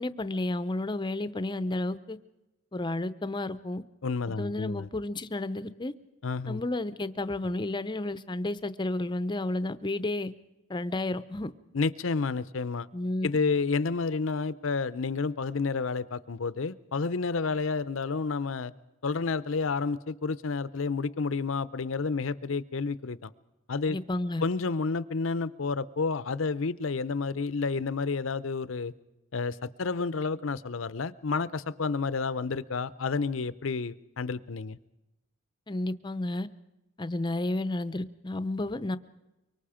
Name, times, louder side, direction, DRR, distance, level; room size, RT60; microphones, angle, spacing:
voice 1, 0.0-2.2 2.7-3.8 4.4-5.9 6.5-10.3 10.7-11.5 12.9-13.3 23.9-24.4 35.7-36.5 37.0-39.0, left 2 dB, 25° left, 13 dB, 0.7 m, -31 dB
voice 2, 4.0-4.9 6.2-6.6 11.7-12.9 13.2-18.7 19.0-23.3 23.7-24.0 24.4-28.9 29.3-34.8, left 4 dB, 75° left, 16 dB, 0.7 m, -30 dB
24.5 x 24.0 x 5.0 m, 0.97 s
head